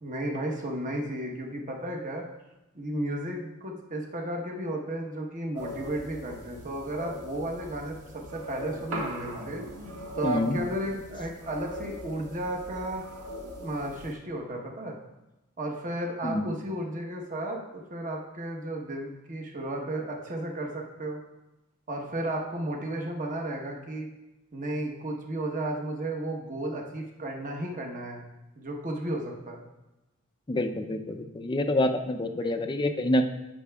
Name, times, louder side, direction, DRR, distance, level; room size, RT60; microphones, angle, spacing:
voice 1, 0.0-2.3 2.7-9.6 10.1-13.0 13.6-15.0 15.6-17.6 17.9-21.2 21.9-24.1 24.5-28.2 28.6-29.6, right 1 dB, 35° right, 1 dB, 1.0 m, -33 dB
sound 1, 5.6-14.1, equal, 75° right, 1.6 m, -41 dB
voice 2, 10.2-10.6 16.2-16.4 30.5-33.2, left 1 dB, 20° left, 7 dB, 0.4 m, -27 dB
15.0 x 5.8 x 2.3 m, 0.99 s
head